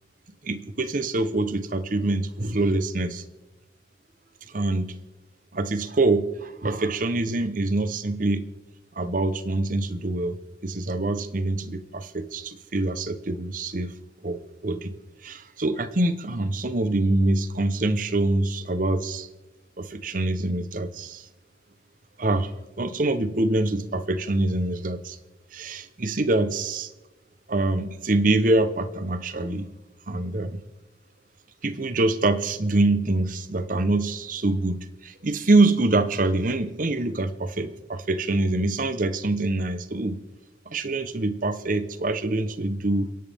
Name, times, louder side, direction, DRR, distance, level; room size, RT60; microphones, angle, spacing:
voice 1, 0.4-3.2 4.5-5.0 5.5-8.5 9.0-13.9 14.2-14.9 15.2-19.3 19.8-21.3 22.2-22.5 22.8-25.2 25.5-26.9 27.5-29.7 30.1-30.6 31.6-40.2 40.7-43.1, right 2 dB, 45° right, 12 dB, 0.9 m, -25 dB
29.0 x 11.0 x 3.6 m, 1.1 s
head